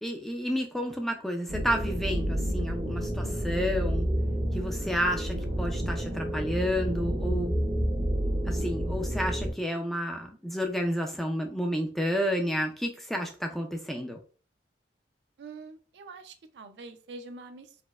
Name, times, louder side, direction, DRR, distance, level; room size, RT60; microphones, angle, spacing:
voice 1, 0.0-4.1 4.5-7.6 8.5-14.2, equal, ahead, 3 dB, 0.3 m, -31 dB
sound 1, 1.5-9.5, equal, 90° right, 1.5 m, -29 dB
voice 2, 15.4-17.8, right 3 dB, 70° right, 8 dB, 0.4 m, -45 dB
4.2 x 2.0 x 2.2 m, 0.39 s
head